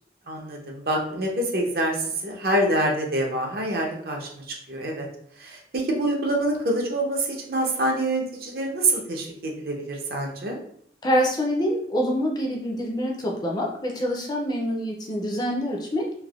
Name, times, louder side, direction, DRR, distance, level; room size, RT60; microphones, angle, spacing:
voice 1, 0.3-5.1 5.4-10.6, right 1 dB, 55° right, 0 dB, 0.6 m, -26 dB
voice 2, 11.0-16.1, equal, 20° left, -1 dB, 0.4 m, -26 dB
3.3 x 2.1 x 2.3 m, 0.66 s
head